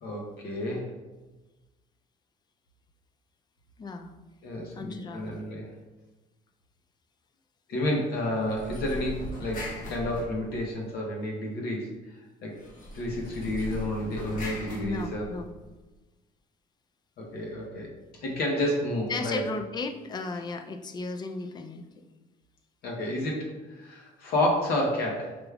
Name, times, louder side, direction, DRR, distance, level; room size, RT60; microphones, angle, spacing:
voice 1, 0.0-0.9 4.4-5.7 7.7-11.9 12.4-12.5 12.9-15.3 17.2-17.9 18.2-19.5 22.8-25.4, left 1 dB, 70° left, -1 dB, 1.0 m, -30 dB
voice 2, 3.8-4.1 4.7-5.3 14.8-15.5 19.1-21.9, left 3 dB, 25° left, 7 dB, 0.4 m, -35 dB
sound 1, 8.4-10.9 12.6-15.7, equal, 50° left, 1.2 m, -39 dB
5.0 x 2.3 x 3.4 m, 1.2 s
cardioid pair, 110°, 17 cm